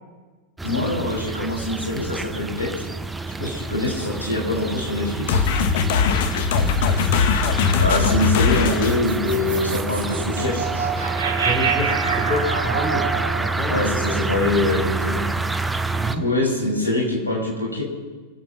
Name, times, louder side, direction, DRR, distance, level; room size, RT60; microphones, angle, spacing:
voice 1, 0.6-2.9 3.4-5.4 7.8-10.6 13.7-15.3 16.1-17.8, left 2 dB, 80° left, -1 dB, 5.8 m, -24 dB
sound 1, 0.6-16.2, right 3 dB, 10° right, 0.9 m, -28 dB
sound 2, 5.3-9.0, left 5 dB, 55° left, 1.4 m, -20 dB
voice 2, 7.5-7.8 11.3-13.1 13.4-13.9 15.9-16.2, equal, 20° left, 3 dB, 3.5 m, -28 dB
sound 3, 8.8-15.1, right 6 dB, 65° right, 2.5 m, -27 dB
25.5 x 8.8 x 5.8 m, 1.3 s
figure-of-eight pair, 90°, 0 cm